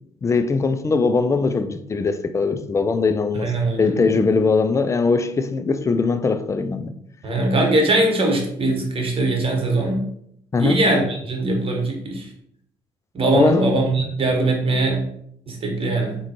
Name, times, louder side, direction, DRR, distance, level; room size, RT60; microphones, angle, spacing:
voice 1, 0.2-3.5 3.8-6.9 10.5-10.8 13.3-13.6, left 4 dB, 20° left, 0.3 m, -20 dB
voice 2, 3.4-3.9 7.2-10.0 10.5-12.3 13.1-15.0 15.5-16.2, right 2 dB, 40° right, 1.1 m, -21 dB
3.6 x 2.2 x 3.0 m
hypercardioid pair, 55°, 15 cm